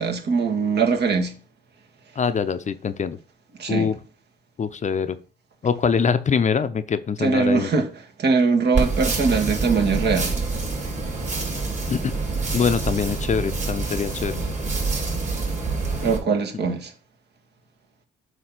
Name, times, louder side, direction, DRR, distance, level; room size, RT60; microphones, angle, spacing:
voice 1, 0.0-1.3 3.6-3.9 7.2-7.9 8.2-10.4 16.0-16.9, right 4 dB, 55° right, 1.4 m, -21 dB
voice 2, 2.2-3.2 3.7-3.9 4.6-5.2 5.6-7.7 11.9-12.1 12.5-14.4, left 6 dB, 35° left, 0.6 m, -23 dB
sound 1, 8.7-16.2, right 3 dB, 40° right, 3.7 m, -26 dB
7.8 x 2.8 x 5.9 m
cardioid pair, 90°, 20 cm